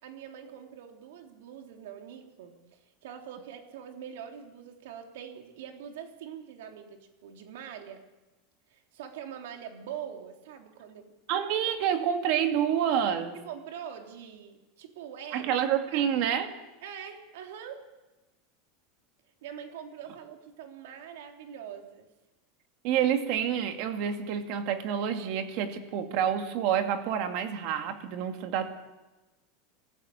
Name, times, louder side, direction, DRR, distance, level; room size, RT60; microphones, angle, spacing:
voice 1, 0.0-8.0 8.7-11.1 13.3-15.6 15.9-16.1 16.8-17.8 19.4-22.1, right 8 dB, 75° right, 4 dB, 3.5 m, -43 dB
voice 2, 11.3-13.4 15.3-16.5 22.8-28.7, right 9 dB, 45° right, 7 dB, 2.2 m, -28 dB
25.5 x 15.5 x 8.7 m, 1.1 s
supercardioid pair, 175°, 0 cm